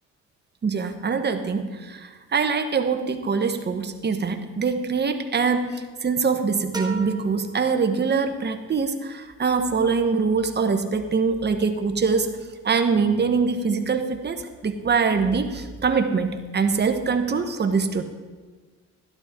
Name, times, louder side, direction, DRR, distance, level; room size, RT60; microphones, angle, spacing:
voice 1, 0.6-12.3 12.6-18.0, right 5 dB, 35° right, 6 dB, 1.1 m, -23 dB
sound 1, 6.7-8.5, right 3 dB, 15° right, 1.1 m, -37 dB
12.0 x 11.5 x 3.7 m, 1.4 s
cardioid pair, 90°, 30 cm